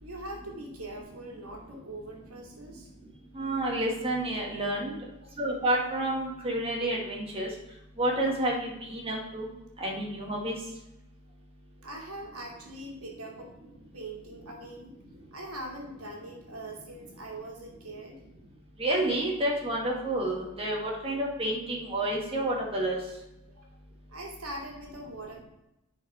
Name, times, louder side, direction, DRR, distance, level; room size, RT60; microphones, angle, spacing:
voice 1, 0.0-2.9 5.2-5.3 11.8-13.5 13.9-14.9 15.3-18.2 23.5-23.7 24.1-25.4, right 1 dB, 80° right, 0 dB, 2.3 m, -42 dB
voice 2, 3.3-5.0 5.4-7.5 8.0-9.5 9.8-10.6 18.8-23.0, right 1 dB, 25° right, -2 dB, 2.0 m, -29 dB
8.8 x 5.0 x 4.9 m, 0.89 s
head